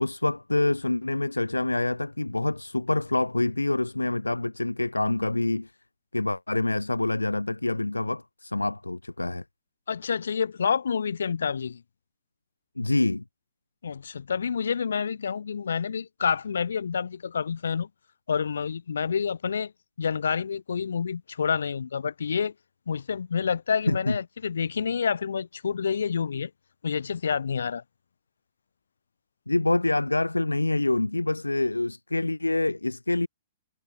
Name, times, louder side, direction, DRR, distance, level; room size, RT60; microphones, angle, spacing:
voice 1, 0.0-5.7 6.1-9.4 12.8-13.2 23.9-24.2 29.5-33.3, left 2 dB, 90° left, 1.1 m, -26 dB
voice 2, 9.9-11.8 13.8-17.9 18.3-19.7 20.0-22.5 22.9-26.5 26.8-27.8, left 6 dB, 70° left, 3.1 m, -28 dB
figure-of-eight pair, 115°, 0 cm